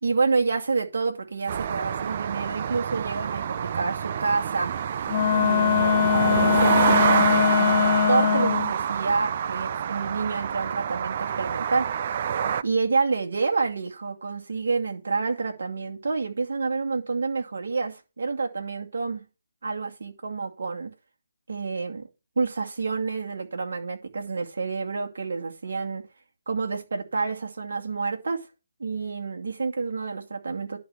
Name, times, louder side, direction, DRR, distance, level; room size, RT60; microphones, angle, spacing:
voice 1, 0.0-4.7 5.3-12.1 12.6-19.2 19.6-20.9 21.5-22.1 22.4-26.0 26.5-28.4 28.8-30.8, right 4 dB, 65° right, 2.3 m, -28 dB
sound 1, 1.5-12.6, right 8 dB, 45° right, 0.5 m, -27 dB
Wind instrument woodwind instrument, 5.1-8.7, left 9 dB, 40° left, 0.7 m, -22 dB
11.0 x 4.0 x 6.8 m
figure-of-eight pair, 150°, 0 cm